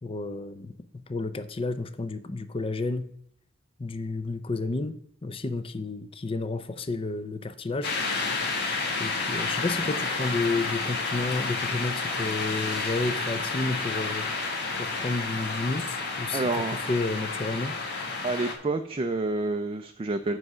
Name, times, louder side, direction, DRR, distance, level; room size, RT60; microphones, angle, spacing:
voice 1, 0.0-3.1 3.8-7.9 9.0-14.3 14.8-17.8, left 3 dB, 25° left, 11 dB, 0.5 m, -31 dB
sound 1, 7.8-18.5, left 3 dB, 55° left, 1.6 m, -30 dB
voice 2, 16.3-16.8 18.2-20.4, right 3 dB, 25° right, 6 dB, 0.4 m, -28 dB
7.8 x 4.8 x 6.1 m, 0.71 s
head